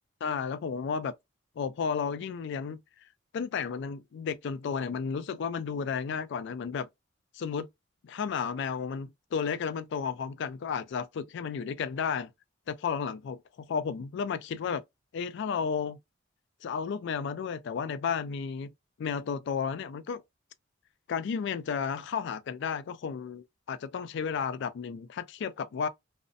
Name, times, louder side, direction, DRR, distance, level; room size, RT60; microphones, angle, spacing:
voice 1, 0.2-1.1 1.6-2.8 3.3-6.9 7.3-7.7 8.0-12.3 12.7-14.8 15.1-16.0 16.6-18.7 19.0-20.2 21.1-25.9, left 6 dB, 60° left, 0.3 m, -33 dB
2.6 x 2.0 x 2.4 m
head